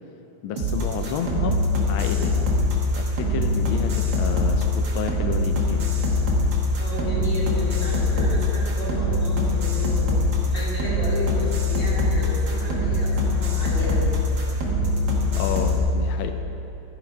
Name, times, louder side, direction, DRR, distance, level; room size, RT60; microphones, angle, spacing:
voice 1, 0.4-1.6 1.9-2.4 2.9-5.9 15.2-16.3, left 7 dB, 80° left, 6 dB, 1.5 m, -30 dB
sound 1, 0.6-15.8, left 2 dB, 65° right, 2.1 m, -23 dB
voice 2, 6.8-10.1 10.5-14.1, left 1 dB, 35° left, -7 dB, 2.9 m, -33 dB
13.0 x 6.1 x 5.5 m, 2.9 s
omnidirectional pair, 2.2 m